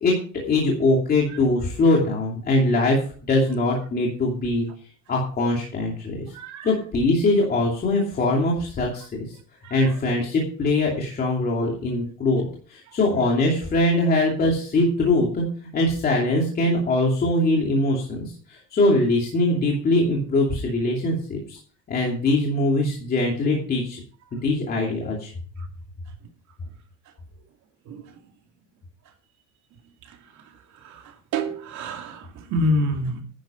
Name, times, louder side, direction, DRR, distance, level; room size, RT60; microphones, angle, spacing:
voice 1, 0.0-4.7 5.1-6.3 6.6-9.3 9.7-12.4 12.7-15.4 15.7-21.6 21.9-24.0 24.3-25.3, left 2 dB, 30° left, -2 dB, 2.7 m, -22 dB
voice 2, 6.3-6.7 27.9-28.0 31.3-32.2 32.5-33.2, equal, 65° right, 4 dB, 2.5 m, -25 dB
10.5 x 10.5 x 4.4 m, 0.42 s
cardioid pair, 180°, 31 cm